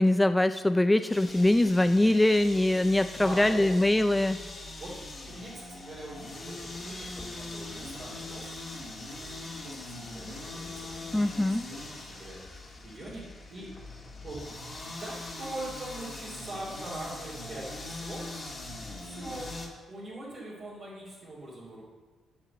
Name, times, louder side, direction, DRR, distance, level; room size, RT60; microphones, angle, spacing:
voice 1, 0.0-4.4 11.1-11.6, left 1 dB, 10° left, 10 dB, 0.3 m, -23 dB
sound 1, 1.1-19.7, left 2 dB, 30° left, 2.3 m, -42 dB
voice 2, 3.2-3.7 4.8-5.0 5.3-8.6 9.1-13.7 14.2-14.4 15.0-18.2 19.0-19.5 19.9-21.8, right 2 dB, 45° right, -8 dB, 3.2 m, -42 dB
8.1 x 6.0 x 7.8 m, 1.4 s
cardioid pair, 90°, 0 cm